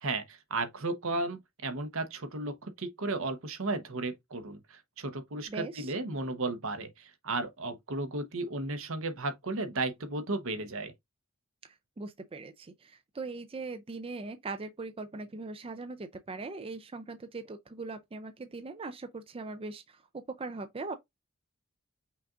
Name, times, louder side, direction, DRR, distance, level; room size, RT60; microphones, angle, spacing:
voice 1, 0.0-10.9, right 2 dB, 70° right, 1.0 m, -34 dB
voice 2, 5.5-5.9 11.6-21.0, right 3 dB, 25° right, 0.4 m, -40 dB
5.8 x 2.4 x 3.7 m
head